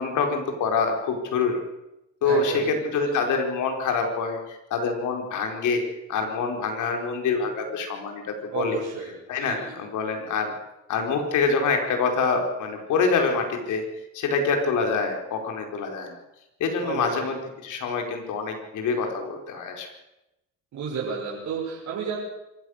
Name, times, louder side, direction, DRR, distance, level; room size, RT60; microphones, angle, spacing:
voice 1, 0.0-1.6 2.2-5.8 6.1-8.8 9.3-10.5 10.9-13.8 14.1-16.2 16.6-19.9, left 4 dB, 80° left, 3 dB, 4.6 m, -26 dB
voice 2, 2.2-3.1 8.5-9.1 9.4-9.7 16.8-17.3 20.7-22.2, right 5 dB, 70° right, -5 dB, 6.4 m, -32 dB
26.0 x 15.5 x 6.5 m, 0.92 s
cardioid pair, 90°, 30 cm